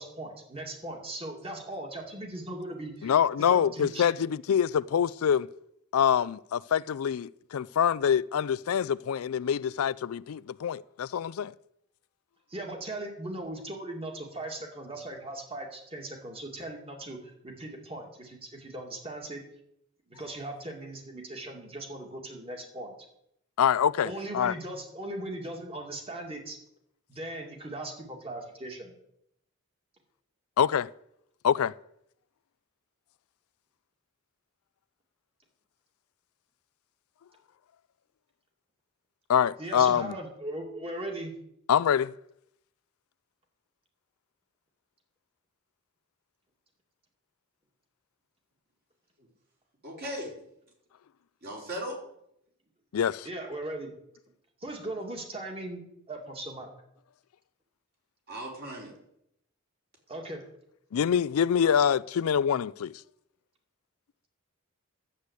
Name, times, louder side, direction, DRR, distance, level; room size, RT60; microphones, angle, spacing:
voice 1, 0.0-3.1 3.4-4.2 12.5-19.4 20.1-22.9 24.0-26.6 27.1-28.9 39.6-41.3 53.2-53.9 54.6-56.7 60.1-60.4, right 1 dB, 25° right, 2.5 m, -39 dB
voice 2, 3.0-5.5 5.9-11.5 23.6-24.5 30.6-30.9 31.4-31.7 39.3-40.1 41.7-42.1 52.9-53.3 60.9-63.0, left 8 dB, 85° left, 0.4 m, -25 dB
voice 3, 49.8-50.3 51.4-52.0 58.3-58.9, equal, 45° right, 4.1 m, -37 dB
11.5 x 7.9 x 8.2 m
head